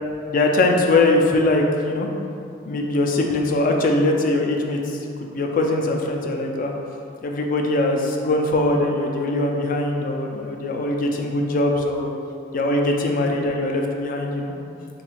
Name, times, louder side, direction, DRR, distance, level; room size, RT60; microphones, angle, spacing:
voice 1, 0.3-2.1 2.7-6.7 7.2-12.1 12.5-14.5, left 2 dB, 50° left, 2 dB, 0.3 m, -21 dB
4.1 x 2.3 x 2.8 m, 2.5 s
head